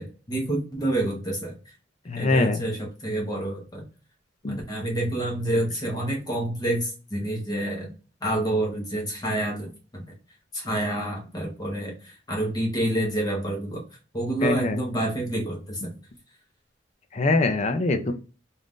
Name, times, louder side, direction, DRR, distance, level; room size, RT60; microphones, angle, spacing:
voice 1, 0.0-1.6 2.1-3.8 4.5-7.9 8.2-10.0 10.5-13.8 14.1-15.9, right 1 dB, 20° left, -1 dB, 1.1 m, -28 dB
voice 2, 2.1-2.6 4.4-4.6 14.4-14.8 15.8-15.9 17.1-18.1, left 2 dB, 35° left, 7 dB, 0.5 m, -23 dB
3.8 x 2.5 x 3.6 m, 0.35 s
head